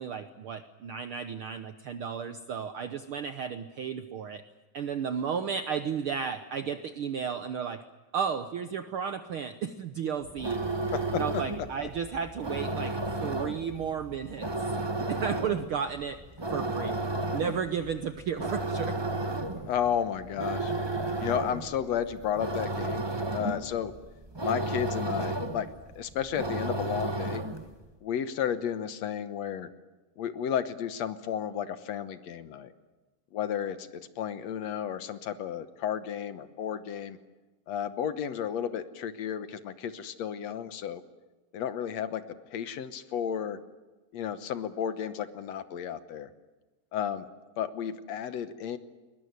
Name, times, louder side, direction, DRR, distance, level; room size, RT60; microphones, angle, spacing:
voice 1, 0.0-4.4 4.7-7.8 8.1-10.6 11.2-14.5 14.9-16.2 16.5-17.0 17.3-19.0, right 7 dB, 70° right, 10 dB, 1.3 m, -33 dB
sound 1, 10.2-27.7, right 2 dB, 40° right, 0.3 m, -33 dB
voice 2, 19.6-20.7 21.2-23.1 23.3-23.9 24.4-25.7 26.0-27.4 28.0-29.7 30.2-32.7 33.3-37.2 37.7-41.0 41.5-42.2 42.5-43.6 44.1-46.3 46.9-47.3 47.6-48.8, left 9 dB, 65° left, 12 dB, 2.1 m, -32 dB
22.0 x 21.0 x 9.5 m, 1.2 s
omnidirectional pair, 3.6 m